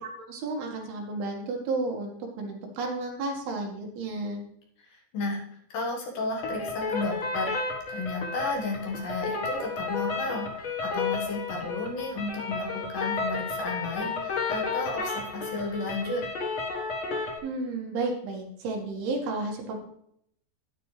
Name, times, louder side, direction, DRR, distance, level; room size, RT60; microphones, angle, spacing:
voice 1, 0.0-4.4 17.4-19.8, right 3 dB, 70° right, 1 dB, 3.3 m, -32 dB
voice 2, 4.8-5.4 5.7-16.2, left 2 dB, 65° left, -1 dB, 3.0 m, -33 dB
sound 1, 6.4-17.4, left 4 dB, 85° left, 1.1 m, -32 dB
10.0 x 9.6 x 3.2 m, 0.71 s
omnidirectional pair, 4.9 m